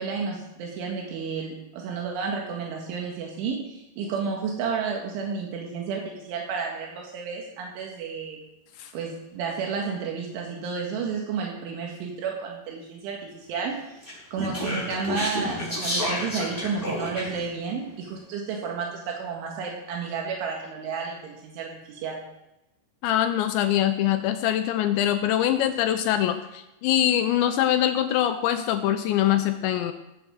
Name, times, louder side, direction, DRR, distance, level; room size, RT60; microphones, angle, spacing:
voice 1, 0.0-8.4 8.9-13.8 14.3-22.2, right 5 dB, 80° right, 0 dB, 4.2 m, -31 dB
Speech, 14.0-17.5, left 1 dB, 5° left, 4.4 m, -30 dB
voice 2, 23.0-29.9, left 11 dB, 80° left, 8 dB, 2.9 m, -23 dB
17.0 x 7.8 x 6.4 m, 0.91 s
omnidirectional pair, 5.5 m